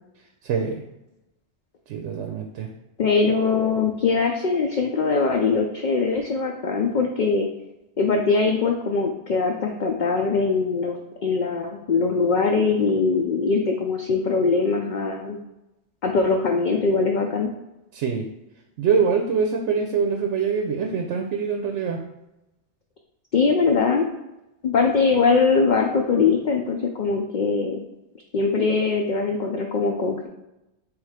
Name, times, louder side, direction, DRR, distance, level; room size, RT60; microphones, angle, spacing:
voice 1, 0.4-0.8 1.9-2.7 17.9-18.2 18.8-22.0, right 6 dB, 85° right, 2 dB, 0.9 m, -24 dB
voice 2, 3.0-7.5 8.0-15.4 16.0-17.5 23.3-24.1 24.6-27.9 28.3-30.3, left 4 dB, 55° left, 2 dB, 0.5 m, -22 dB
3.4 x 3.1 x 4.8 m, 0.93 s
omnidirectional pair, 1.2 m